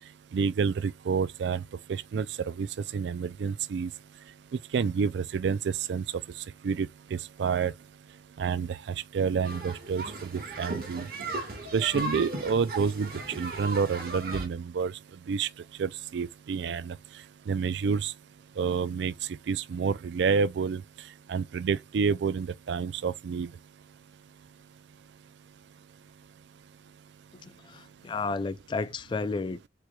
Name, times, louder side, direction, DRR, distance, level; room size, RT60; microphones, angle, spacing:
voice 1, 0.3-1.6 1.9-2.7 2.9-3.9 4.7-6.0 6.6-7.7 8.4-8.8 9.1-10.0 10.3-11.1 11.7-13.1 13.4-14.9 15.3-15.5 15.8-17.0 17.5-18.1 18.6-19.1 19.5-20.8 21.3-23.5, right 6 dB, 75° right, 0.4 m, -28 dB
sound 1, 9.4-14.5, right 2 dB, 55° right, 1.6 m, -36 dB
voice 2, 27.4-29.7, left 3 dB, 25° left, 0.3 m, -32 dB
4.7 x 4.4 x 2.3 m
head